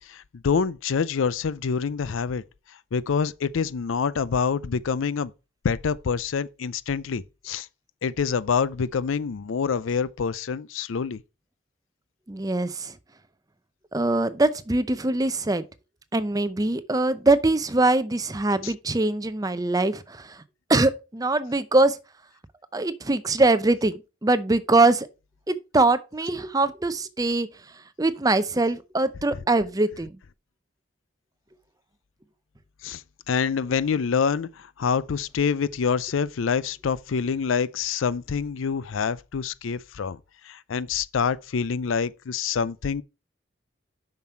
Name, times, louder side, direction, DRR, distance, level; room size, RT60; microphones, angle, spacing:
voice 1, 0.0-2.4 2.9-5.3 5.6-7.7 8.0-11.2 18.6-18.7 32.8-33.0 33.3-40.2 40.5-43.0, left 6 dB, 90° left, 0.5 m, -26 dB
voice 2, 12.3-12.9 13.9-15.7 16.1-20.4 20.7-22.0 22.7-25.1 25.5-27.5 28.0-30.2, right 2 dB, 20° right, 0.6 m, -23 dB
7.1 x 6.0 x 4.4 m
head